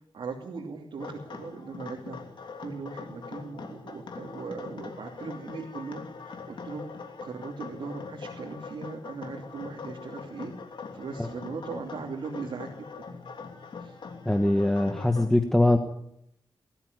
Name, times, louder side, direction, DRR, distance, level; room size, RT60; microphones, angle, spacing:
voice 1, 0.1-2.2 2.6-10.5 10.9-12.7 13.1-13.2 13.8-14.0, right 4 dB, 85° right, -1 dB, 2.9 m, -39 dB
sound 1, 1.0-15.2, left 5 dB, 75° left, 3.0 m, -42 dB
voice 2, 14.2-15.8, left 1 dB, 5° left, 6 dB, 1.2 m, -22 dB
20.0 x 13.5 x 9.6 m, 0.77 s
wide cardioid pair, 150°, 8 cm